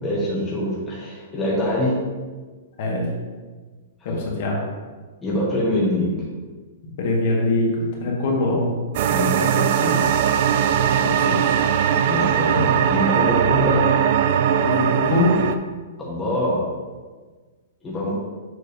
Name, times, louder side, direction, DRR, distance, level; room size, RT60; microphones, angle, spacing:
voice 1, 0.0-1.9 4.0-4.2 5.2-6.1 9.1-10.3 12.0-13.9 16.0-16.6 17.8-18.1, left 1 dB, 10° left, -7 dB, 1.3 m, -24 dB
voice 2, 4.0-4.6 6.8-8.7 11.0-11.6 14.6-15.5, left 2 dB, 50° left, -2 dB, 1.7 m, -23 dB
sound 1, 8.9-15.6, right 8 dB, 45° right, 0.4 m, -20 dB
6.9 x 3.3 x 5.2 m, 1.4 s
hypercardioid pair, 155°, 0 cm